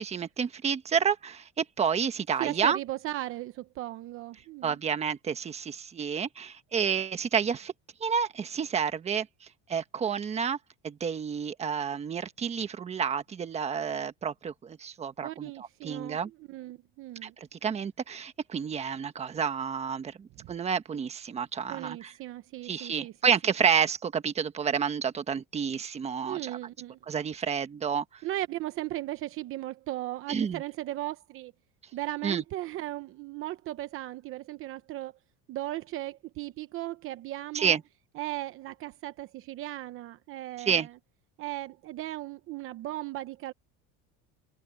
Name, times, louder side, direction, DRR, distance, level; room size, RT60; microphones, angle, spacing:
voice 1, 0.0-2.8 4.6-7.7 8.0-10.6 10.8-16.3 17.2-22.1 22.6-26.6 27.1-28.2 30.3-30.6 32.2-32.4 37.5-37.8 40.6-40.9, right 7 dB, 20° right, 1.3 m, -30 dB
voice 2, 2.4-4.8 15.2-17.3 20.4-20.5 21.7-23.3 26.3-27.0 28.2-31.5 31.9-35.1 35.5-37.8 38.2-40.9 41.4-43.5, right 16 dB, 45° right, 0.9 m, -37 dB
cardioid pair, 160°, 30 cm